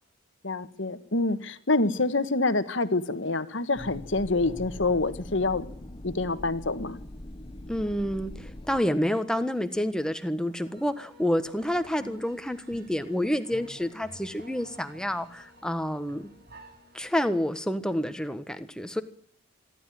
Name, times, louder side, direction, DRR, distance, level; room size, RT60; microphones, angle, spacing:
voice 1, 0.4-5.7 6.0-7.0, left 2 dB, 65° left, 11 dB, 1.5 m, -27 dB
sound 1, 3.7-8.8, left 1 dB, 25° left, 1.2 m, -42 dB
voice 2, 7.7-16.3 16.9-19.0, equal, 5° left, 9 dB, 1.4 m, -29 dB
sound 2, 10.4-17.1, right 1 dB, 50° right, 6.5 m, -51 dB
26.5 x 12.5 x 9.2 m, 0.64 s
head